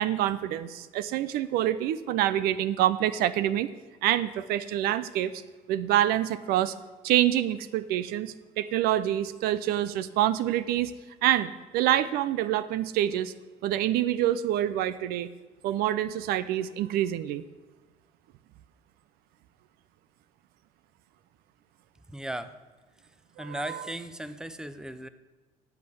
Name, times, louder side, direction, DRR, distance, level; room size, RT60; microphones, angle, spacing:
voice 1, 0.0-3.7 4.0-5.4 5.7-6.7 7.0-10.9 11.2-13.3 13.6-15.3 15.6-17.4 23.4-23.8, right 12 dB, 75° right, 15 dB, 0.6 m, -26 dB
voice 2, 22.1-22.5 23.4-25.1, right 1 dB, 5° right, 12 dB, 0.8 m, -36 dB
8.3 x 8.1 x 8.4 m, 1.3 s
supercardioid pair, 80°, 16 cm